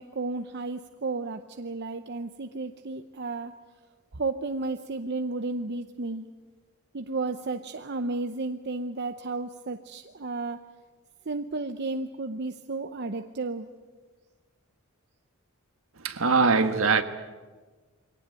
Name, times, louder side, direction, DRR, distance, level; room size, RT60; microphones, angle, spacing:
voice 1, 0.0-3.6 4.1-6.3 6.9-10.7 11.3-13.7, right 3 dB, 50° right, 0.8 m, -33 dB
voice 2, 16.0-17.0, right 4 dB, 70° right, 1.5 m, -22 dB
23.0 x 18.0 x 9.2 m
head